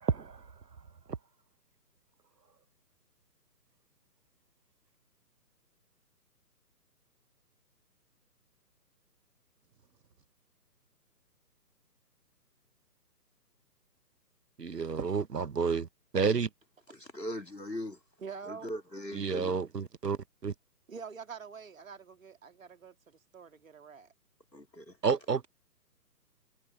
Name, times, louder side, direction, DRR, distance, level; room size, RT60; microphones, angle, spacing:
voice 1, 0.0-0.4 14.6-15.9 16.1-16.5 19.1-20.5 25.0-25.5, right 5 dB, 75° right, 1.1 m, -30 dB
voice 2, 16.9-18.0 18.5-19.5 24.5-25.0, equal, 90° left, 3.2 m, -40 dB
voice 3, 18.2-18.7 20.9-24.1, right 6 dB, 50° right, 2.3 m, -46 dB
figure-of-eight pair, 140°, 49 cm